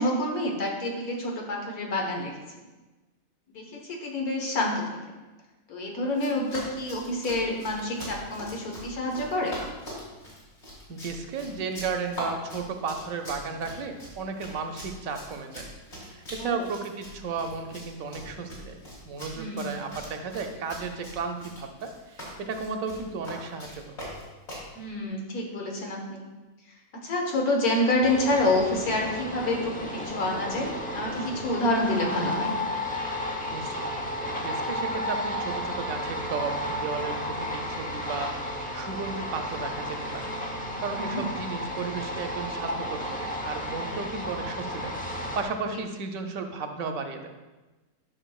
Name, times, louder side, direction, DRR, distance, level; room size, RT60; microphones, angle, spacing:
voice 1, 0.0-2.3 3.5-3.6 4.0-4.7 5.7-9.5 16.4-16.6 19.4-19.7 24.8-26.3 27.0-32.5 41.0-41.2, left 1 dB, 85° left, 0 dB, 1.8 m, -28 dB
Run, 6.1-24.7, equal, 50° left, 3.0 m, -42 dB
voice 2, 10.9-15.7 16.0-18.7 19.0-23.9 33.5-33.9 34.3-38.3 38.7-40.3 40.8-47.3, right 5 dB, 75° right, 5 dB, 1.1 m, -34 dB
sound 1, 28.0-45.4, left 1 dB, 10° left, 0.4 m, -33 dB
10.0 x 6.1 x 2.3 m, 1.2 s
omnidirectional pair, 1.5 m